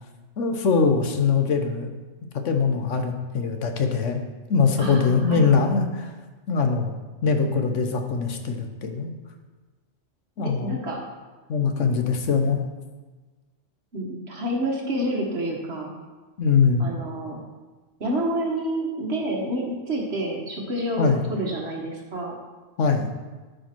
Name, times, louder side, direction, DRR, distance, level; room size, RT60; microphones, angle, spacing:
voice 1, 0.4-1.9 2.4-4.2 4.5-6.1 6.5-7.0 7.2-9.1 10.4-10.8 11.5-12.6 16.4-16.9 21.0-21.2 22.8-23.1, left 5 dB, 75° left, 5 dB, 1.3 m, -22 dB
voice 2, 4.8-5.5 10.4-11.0 11.7-11.8 13.9-15.9 16.8-17.4 18.0-22.3, right 1 dB, 60° right, -1 dB, 1.8 m, -28 dB
12.5 x 5.3 x 4.4 m, 1.3 s
omnidirectional pair, 1.3 m